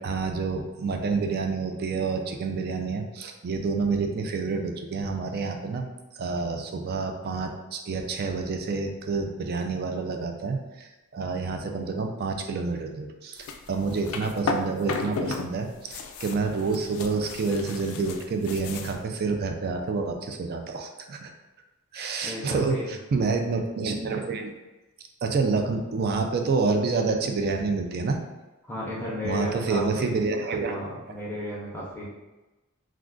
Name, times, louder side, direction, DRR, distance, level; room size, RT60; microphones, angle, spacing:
voice 1, 0.0-5.8 6.1-21.3 21.9-24.5 25.2-28.2 29.2-30.8, right 4 dB, 50° right, 4 dB, 0.4 m, -28 dB
sound 1, 13.4-15.5 15.7-19.0, left 4 dB, 70° left, 0.3 m, -34 dB
voice 2, 22.2-22.9 28.6-30.1 30.6-32.0, left 1 dB, 10° left, -5 dB, 0.6 m, -34 dB
2.4 x 2.3 x 3.7 m, 1.1 s
head